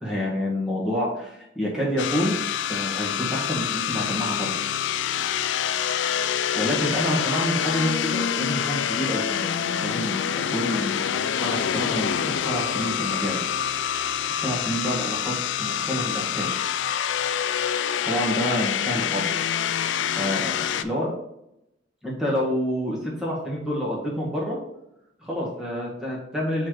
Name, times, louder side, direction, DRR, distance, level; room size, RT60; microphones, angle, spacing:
voice 1, 0.0-2.4 2.7-4.5 6.5-9.5 9.8-11.0 11.4-13.3 14.2-16.6 18.0-19.3 20.2-21.1 22.0-24.6 25.2-26.7, equal, 5° right, -5 dB, 1.8 m, -28 dB
sound 1, 2.0-20.8, left 9 dB, 75° left, 0.4 m, -26 dB
5.9 x 4.4 x 4.8 m, 0.83 s
head